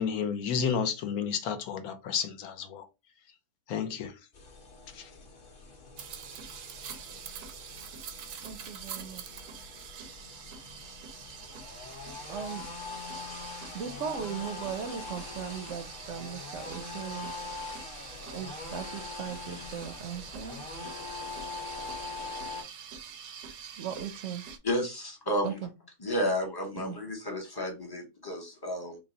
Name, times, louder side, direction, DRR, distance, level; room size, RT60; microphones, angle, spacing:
voice 1, 0.0-2.9 3.7-4.2 4.9-5.1, left 7 dB, 70° left, 1.1 m, -31 dB
sound 1, 4.3-22.6, left 3 dB, 40° left, 0.9 m, -43 dB
sound 2, 6.0-24.6, right 7 dB, 85° right, 1.2 m, -45 dB
voice 2, 8.4-9.2 12.3-12.7 13.7-17.3 18.3-20.6 23.8-24.4 25.4-25.7 26.8-27.0, right 8 dB, 65° right, 0.8 m, -38 dB
voice 3, 24.6-25.6 26.0-29.0, equal, 25° left, 0.6 m, -32 dB
3.9 x 2.1 x 3.8 m
omnidirectional pair, 1.7 m